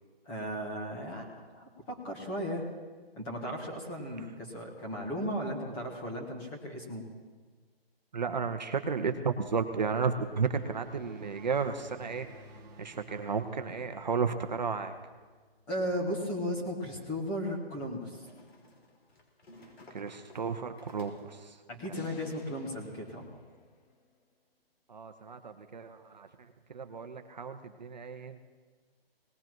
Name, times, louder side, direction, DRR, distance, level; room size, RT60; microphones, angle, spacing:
voice 1, 0.2-2.7 3.2-7.0 15.7-18.3 21.7-23.3, equal, 10° left, -2 dB, 1.3 m, -36 dB
voice 2, 8.1-14.9 19.6-21.6 24.9-28.5, right 5 dB, 45° right, 7 dB, 0.9 m, -33 dB
sound 1, 9.8-16.3, right 1 dB, 20° right, 1.2 m, -54 dB
sound 2, 18.1-21.4, left 2 dB, 75° left, 3.7 m, -55 dB
sound 3, 21.9-24.2, left 3 dB, 40° left, 1.6 m, -55 dB
19.0 x 18.0 x 3.0 m, 1.4 s
hypercardioid pair, 170°, 31 cm